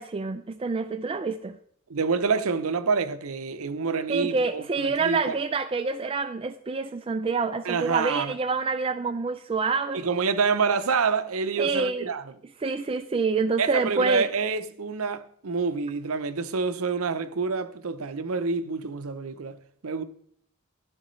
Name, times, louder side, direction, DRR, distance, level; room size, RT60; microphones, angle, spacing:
voice 1, 0.0-1.6 4.1-10.0 11.6-12.1 12.6-14.3, right 4 dB, 25° right, 0.3 m, -27 dB
voice 2, 1.9-5.4 7.6-8.3 9.9-12.3 13.6-20.0, right 4 dB, 75° right, 0.7 m, -27 dB
11.5 x 10.5 x 3.2 m
head